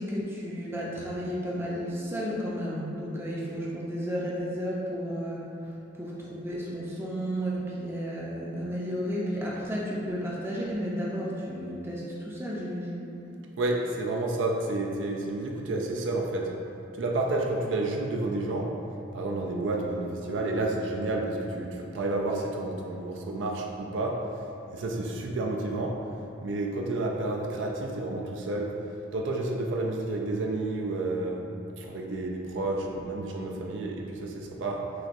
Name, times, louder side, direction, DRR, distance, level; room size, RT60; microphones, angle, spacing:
voice 1, 0.0-5.4 6.0-13.1, equal, 10° right, -5 dB, 0.5 m, -32 dB
voice 2, 13.6-16.5 16.9-18.8 19.1-26.0 26.4-28.8 29.1-31.5 31.8-34.9, right 2 dB, 70° right, 0 dB, 0.4 m, -30 dB
6.1 x 2.6 x 2.5 m, 2.8 s
head